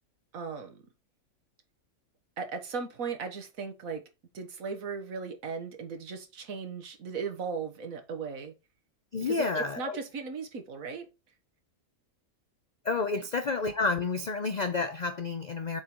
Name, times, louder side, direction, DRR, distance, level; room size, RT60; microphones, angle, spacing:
voice 1, 0.3-0.8 2.4-4.0 4.3-8.5 9.3-11.1 13.1-13.2, right 5 dB, 70° right, 1.6 m, -37 dB
voice 2, 9.1-10.0 12.8-15.8, left 4 dB, 65° left, 0.4 m, -30 dB
7.3 x 3.7 x 4.5 m
omnidirectional pair, 1.5 m